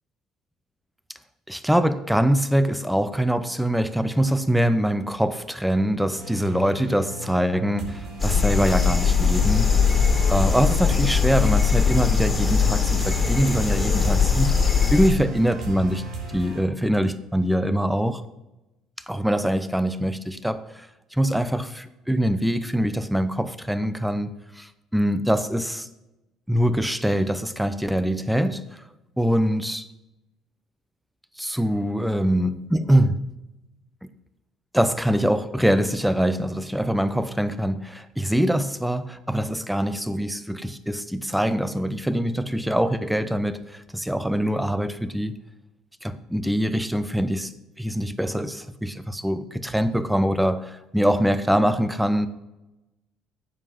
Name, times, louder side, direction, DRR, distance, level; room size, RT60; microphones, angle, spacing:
voice 1, 1.5-9.7 10.3-16.0 16.3-18.2 19.1-20.9 21.1-25.9 26.5-28.6 29.2-29.9 31.4-33.3 34.0-34.1 34.7-45.4 46.0-47.5 47.8-52.3, equal, 5° right, 0.8 m, -23 dB
sound 1, 6.2-16.6, right 3 dB, 70° right, 3.3 m, -35 dB
sound 2, 8.2-15.1, left 6 dB, 15° left, 2.5 m, -21 dB
9.8 x 7.8 x 5.9 m
cardioid pair, 110°, 0 cm